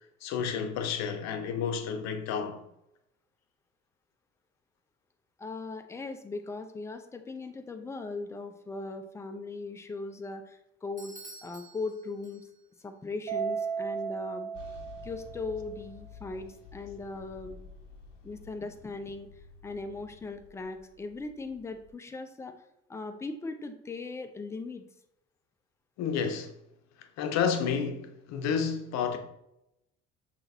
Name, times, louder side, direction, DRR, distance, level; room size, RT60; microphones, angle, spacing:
voice 1, 0.2-2.6 26.0-26.5 27.2-29.2, left 6 dB, 45° left, 0.7 m, -30 dB
voice 2, 5.4-11.1 11.4-12.5 12.8-14.5 15.0-17.6 18.2-19.3 19.6-22.5 22.9-24.8, left 3 dB, 10° left, 0.3 m, -39 dB
Bell / Doorbell, 11.0-12.8, right 2 dB, 20° right, 1.2 m, -50 dB
Mallet percussion, 13.3-15.7, right 6 dB, 75° right, 0.7 m, -35 dB
sound 1, 14.5-21.9, left 5 dB, 85° left, 0.7 m, -51 dB
5.7 x 2.9 x 2.7 m
figure-of-eight pair, 55°, 37 cm